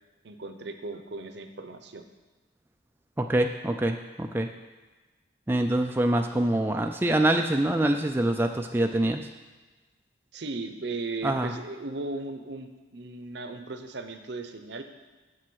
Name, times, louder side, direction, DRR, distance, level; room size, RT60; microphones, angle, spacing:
voice 1, 0.2-2.0 10.3-14.8, right 3 dB, 60° right, 8 dB, 0.8 m, -37 dB
voice 2, 3.2-4.5 5.5-9.2 11.2-11.5, right 1 dB, 10° right, 4 dB, 0.3 m, -25 dB
7.6 x 7.5 x 6.2 m, 1.3 s
head